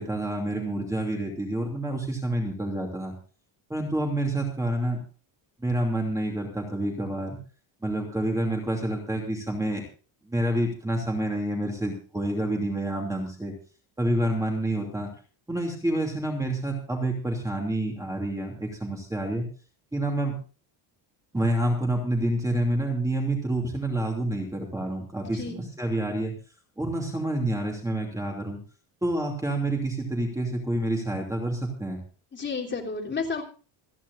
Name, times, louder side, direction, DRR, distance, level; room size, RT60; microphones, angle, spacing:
voice 1, 0.0-3.1 3.7-5.0 5.6-7.4 7.8-9.8 10.3-13.5 14.0-15.1 15.5-19.5 19.9-20.4 21.3-26.3 26.8-28.6 29.0-32.0, right 1 dB, 5° right, 1 dB, 2.8 m, -28 dB
voice 2, 25.2-25.5 32.3-33.4, left 4 dB, 20° left, -1 dB, 3.5 m, -31 dB
28.0 x 10.0 x 2.6 m, 0.37 s
cardioid pair, 170°, 48 cm